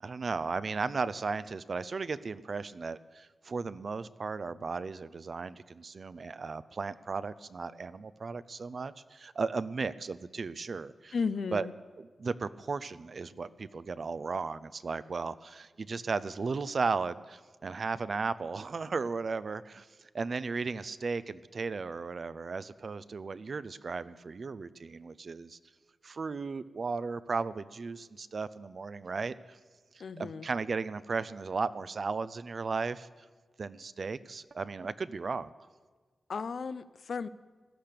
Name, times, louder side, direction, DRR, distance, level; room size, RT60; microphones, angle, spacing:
voice 1, 0.0-11.1 11.5-11.7 12.2-19.9 20.1-25.6 26.0-29.6 29.9-33.1 33.6-35.5, right 4 dB, 55° right, 15 dB, 0.5 m, -35 dB
voice 2, 11.1-11.7 30.0-30.5 36.3-37.3, left 5 dB, 75° left, 15 dB, 0.5 m, -34 dB
16.5 x 12.0 x 6.8 m, 1.4 s
wide cardioid pair, 95°, 0 cm